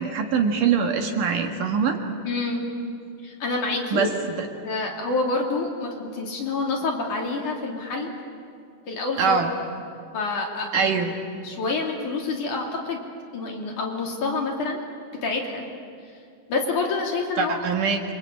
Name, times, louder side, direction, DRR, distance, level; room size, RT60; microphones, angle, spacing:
voice 1, 0.0-2.0 3.9-4.1 4.4-4.5 9.2-9.5 10.7-11.2 17.4-18.0, right 5 dB, 60° right, 3 dB, 2.8 m, -23 dB
voice 2, 2.2-2.6 3.2-4.1 4.6-8.1 8.9-9.4 10.1-10.9 11.4-13.0 13.3-14.8 15.2-15.6 16.5-17.6, left 3 dB, 50° left, 0 dB, 4.1 m, -27 dB
28.0 x 24.0 x 8.8 m, 2.4 s
omnidirectional pair, 4.7 m